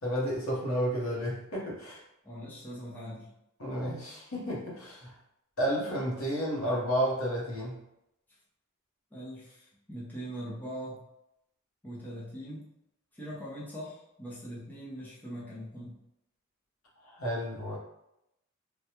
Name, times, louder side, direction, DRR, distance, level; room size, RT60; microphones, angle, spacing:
voice 1, 0.0-2.0 3.6-5.1 5.6-7.8 17.0-17.8, equal, 70° left, -4 dB, 1.1 m, -31 dB
voice 2, 2.2-3.3 9.1-11.0 11.8-12.7 13.1-16.0, equal, 10° left, -8 dB, 0.7 m, -41 dB
3.3 x 2.2 x 2.9 m, 0.83 s
head